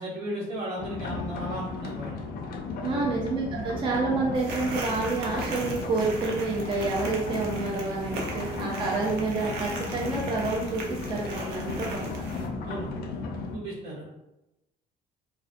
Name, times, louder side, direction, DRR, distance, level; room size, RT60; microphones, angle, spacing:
voice 1, 0.0-2.2 2.9-3.2 12.6-12.9 13.5-14.2, right 1 dB, 75° right, -6 dB, 1.2 m, -36 dB
sound 1, 0.8-13.6, left 4 dB, 60° left, 0.4 m, -35 dB
voice 2, 2.8-12.2, right 3 dB, 30° right, -3 dB, 0.4 m, -29 dB
sound 2, 4.3-12.5, right 3 dB, 90° right, 0.5 m, -39 dB
2.3 x 2.2 x 2.5 m, 0.94 s
cardioid pair, 110°, 17 cm